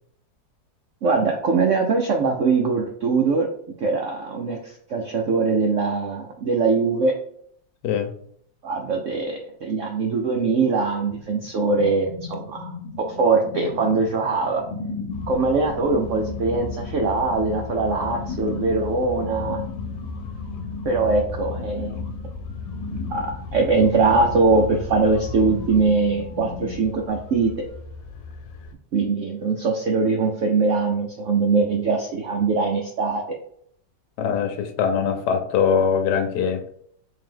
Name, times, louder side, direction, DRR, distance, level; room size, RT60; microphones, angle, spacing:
voice 1, 1.0-3.5 3.8-7.1 8.6-12.7 13.1-14.6 15.3-19.6 20.8-22.0 23.1-27.7 28.9-33.4, right 4 dB, 75° right, 1 dB, 0.7 m, -22 dB
sound 1, 11.1-26.9, left 4 dB, 50° left, 0.8 m, -36 dB
sound 2, 15.1-28.7, left 4 dB, 90° left, 1.4 m, -36 dB
voice 2, 34.2-36.7, left 7 dB, 75° left, 7 dB, 1.2 m, -22 dB
3.7 x 2.7 x 3.7 m, 0.65 s
omnidirectional pair, 1.9 m